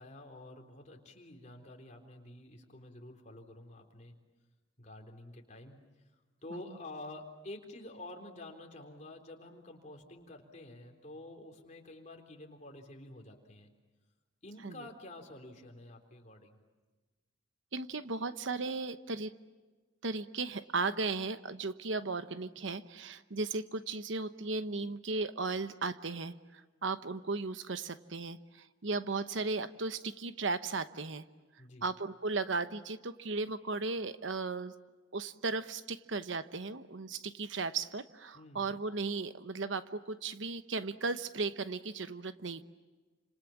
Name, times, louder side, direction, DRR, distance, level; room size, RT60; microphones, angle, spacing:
voice 1, 0.0-4.1 4.8-5.8 6.4-13.7 14.4-16.6 31.6-31.9 38.3-38.7, left 2 dB, 40° left, 2 dB, 3.8 m, -49 dB
voice 2, 17.7-19.3 20.0-31.2 31.8-34.7 35.1-42.6, right 3 dB, 70° right, 11 dB, 1.0 m, -36 dB
29.5 x 27.0 x 7.3 m, 1.3 s
head